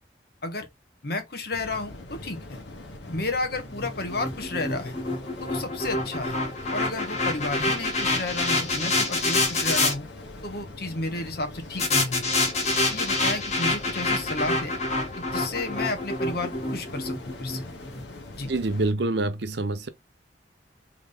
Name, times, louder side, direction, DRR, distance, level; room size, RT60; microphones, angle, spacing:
voice 1, 1.0-2.6 3.1-4.9 5.4-6.4 6.7-10.0 10.4-12.3 12.9-14.8 15.2-17.7 18.4-18.5, left 2 dB, 60° left, 1.3 m, -32 dB
sound 1, 1.5-18.9, left 2 dB, 90° left, 1.5 m, -43 dB
sound 2, 3.7-9.9 11.8-18.0, left 2 dB, 40° left, 1.4 m, -27 dB
voice 2, 18.5-19.9, right 2 dB, 65° right, 0.7 m, -26 dB
3.8 x 3.6 x 3.4 m
head